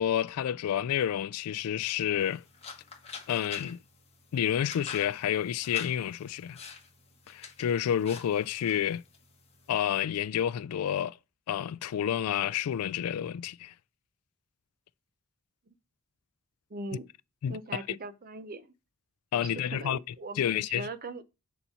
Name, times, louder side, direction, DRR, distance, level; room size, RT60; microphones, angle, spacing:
voice 1, 0.0-2.4 3.3-3.8 4.3-6.6 7.3-9.0 9.7-11.2 11.5-13.7 17.4-17.8 19.3-20.0 20.4-20.9, left 9 dB, 75° left, 0.3 m, -29 dB
sound 1, 2.2-10.0, left 5 dB, 30° left, 1.4 m, -47 dB
voice 2, 16.7-17.0 17.5-18.7 19.3-21.2, right 2 dB, 40° right, 0.7 m, -40 dB
7.1 x 4.1 x 5.6 m
head